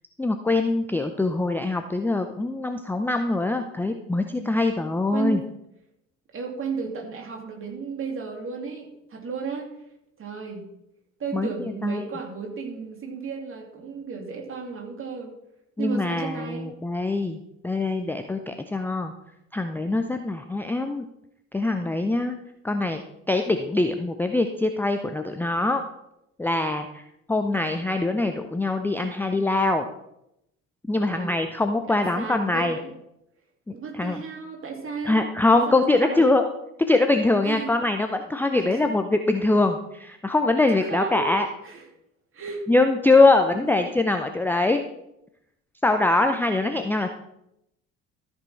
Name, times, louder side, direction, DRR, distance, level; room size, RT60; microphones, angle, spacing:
voice 1, 0.2-5.4 11.3-11.5 11.8-12.1 15.8-17.4 17.6-19.1 19.5-21.1 21.5-22.4 22.6-23.0 23.3-25.8 26.4-27.0 27.3-29.8 30.9-32.8 33.7-34.2 35.1-36.4 36.9-41.5 42.7-44.8 45.8-47.1, left 2 dB, 5° left, 6 dB, 0.5 m, -23 dB
voice 2, 5.1-5.4 6.3-9.7 10.2-10.7 11.2-15.3 15.8-16.7 30.9-31.3 31.9-32.9 33.7-36.4 37.4-37.7 38.5-38.8 40.7-41.3 41.6-41.9 42.3-42.6 43.5-44.0, right 5 dB, 35° right, 1 dB, 2.5 m, -34 dB
13.5 x 6.1 x 4.4 m, 0.83 s
figure-of-eight pair, 55°, 39 cm